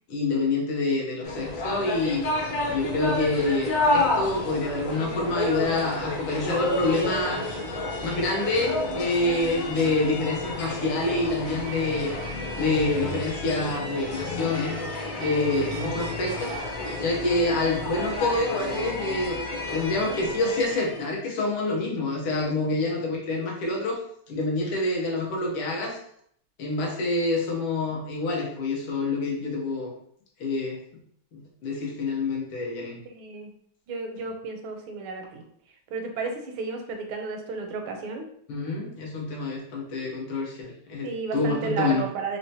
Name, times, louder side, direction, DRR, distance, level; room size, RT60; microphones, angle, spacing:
voice 1, 0.1-2.3 2.7-7.4 8.0-12.1 12.6-14.8 15.2-16.6 17.0-24.0 24.3-26.0 26.6-29.9 30.4-30.8 31.3-33.0 38.5-42.1, left 2 dB, 80° left, -2 dB, 1.7 m, -27 dB
sound 1, 1.2-21.1, left 2 dB, 55° left, 0.9 m, -30 dB
voice 2, 33.0-33.5 33.9-35.4 35.9-38.2 41.0-42.4, right 4 dB, 80° right, 4 dB, 1.4 m, -32 dB
4.2 x 2.1 x 2.7 m, 0.66 s
omnidirectional pair, 2.4 m